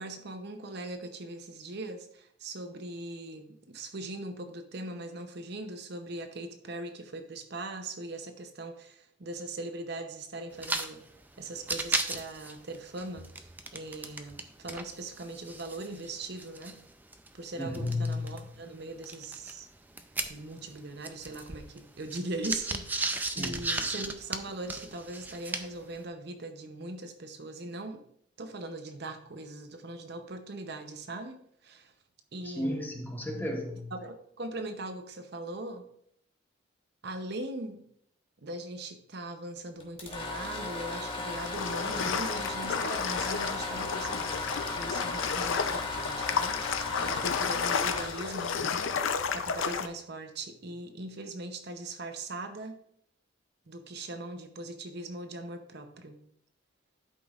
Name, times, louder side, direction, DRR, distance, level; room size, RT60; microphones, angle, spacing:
voice 1, 0.0-11.0 11.4-16.8 17.3-19.7 20.3-28.0 28.4-31.9 32.3-32.9 33.9-35.9 37.0-37.8 38.4-46.6 47.1-48.5 49.3-52.8 53.7-56.2, right 2 dB, 55° right, 6 dB, 0.7 m, -40 dB
sound 1, 10.5-10.9 11.2-11.3 11.6-14.4 14.7-18.4 19.0-20.7 21.0-25.8, right 2 dB, 10° right, 0.4 m, -35 dB
voice 2, 17.6-18.5 23.4-23.6 32.4-33.9, left 2 dB, 10° left, 2 dB, 0.9 m, -33 dB
sound 2, 39.8-49.6, left 3 dB, 25° left, 1.2 m, -37 dB
sound 3, 41.3-49.9, left 6 dB, 75° left, 0.5 m, -32 dB
12.0 x 5.2 x 2.4 m, 0.69 s
head